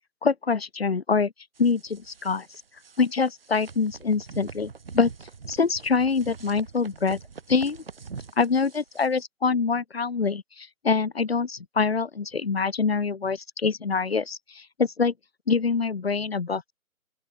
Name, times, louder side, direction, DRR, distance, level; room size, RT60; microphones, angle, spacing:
voice 1, 0.2-1.3 1.6-2.5 3.0-5.1 5.5-7.2 7.5-7.8 8.4-15.1 15.5-16.7, left 5 dB, 45° left, 0.8 m, -25 dB
sound 1, 1.6-9.2, right 5 dB, 40° right, 6.7 m, -44 dB
open air
hypercardioid pair, 180°, 42 cm